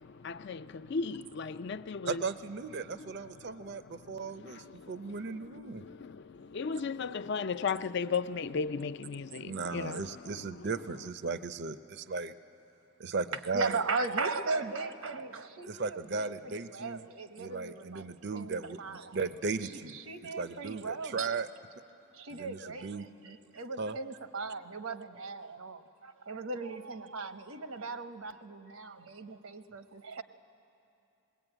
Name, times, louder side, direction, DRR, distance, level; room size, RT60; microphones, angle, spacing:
voice 1, 0.0-2.2 2.8-10.8, left 5 dB, 55° left, 0.5 m, -37 dB
voice 2, 2.1-5.8 9.4-12.3 13.0-13.7 15.6-17.0 17.4-20.0 20.3-21.5 22.3-23.1 23.8-24.0, right 4 dB, 55° right, 0.6 m, -36 dB
voice 3, 13.5-19.2 19.6-21.5 22.1-30.2, right 3 dB, 80° right, 1.0 m, -38 dB
22.5 x 20.5 x 9.0 m
head